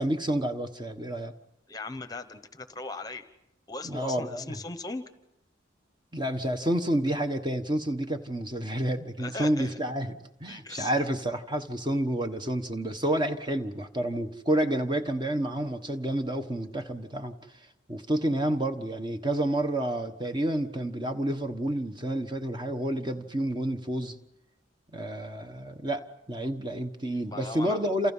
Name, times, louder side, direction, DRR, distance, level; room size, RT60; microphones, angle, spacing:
voice 1, 0.0-1.3 3.8-4.6 6.1-17.3 17.9-24.2 24.9-28.1, right 1 dB, 25° right, 7 dB, 1.3 m, -29 dB
voice 2, 1.7-3.2 3.7-5.0 9.2-9.8 10.5-10.9 27.1-27.9, left 2 dB, 20° left, 10 dB, 1.0 m, -38 dB
29.0 x 28.0 x 5.6 m, 0.85 s
head